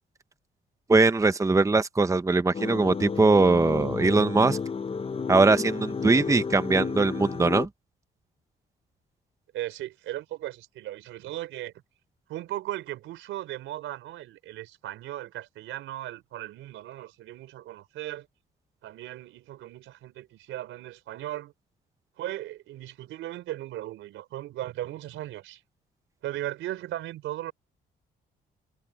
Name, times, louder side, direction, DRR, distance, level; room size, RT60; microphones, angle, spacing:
voice 1, 0.9-4.6 5.3-7.7, right 3 dB, 15° right, 0.9 m, -21 dB
sound 1, 2.5-7.7, left 5 dB, 30° left, 0.9 m, -32 dB
voice 2, 9.5-11.7 12.3-18.3 18.8-21.5 22.2-25.6 26.2-27.5, right 14 dB, 90° right, 4.0 m, -37 dB
cardioid pair, 90°, 20 cm